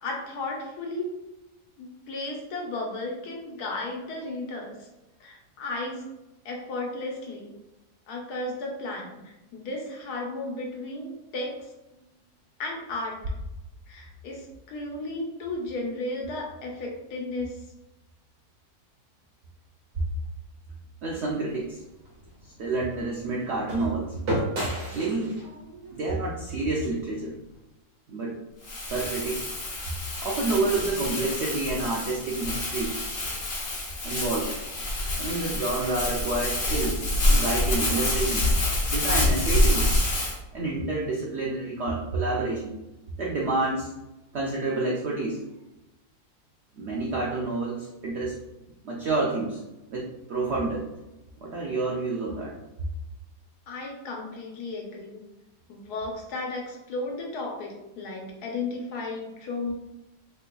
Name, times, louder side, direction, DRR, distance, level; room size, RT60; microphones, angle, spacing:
voice 1, 0.0-1.1 1.8-4.9 5.2-6.1 6.4-7.5 8.1-11.7 12.6-13.2 13.9-17.6 53.7-55.2 55.7-59.7, left 2 dB, 75° left, 0 dB, 1.2 m, -34 dB
voice 2, 21.0-21.8 22.6-24.2 24.9-25.4 25.9-27.3 28.1-28.4 28.8-29.5 30.2-33.0 34.0-34.5 35.2-38.5 38.9-39.9 40.5-42.7 43.2-43.9 44.3-45.5 46.8-48.4 48.8-49.6 49.9-50.9 51.4-52.5, right 3 dB, 75° right, -2 dB, 0.6 m, -29 dB
sound 1, 21.5-27.6, right 1 dB, 55° right, 1.1 m, -35 dB
Crumpling crinkling, 28.6-40.3, left 1 dB, 50° left, 0.7 m, -27 dB
3.6 x 3.2 x 2.2 m, 0.97 s
omnidirectional pair, 1.7 m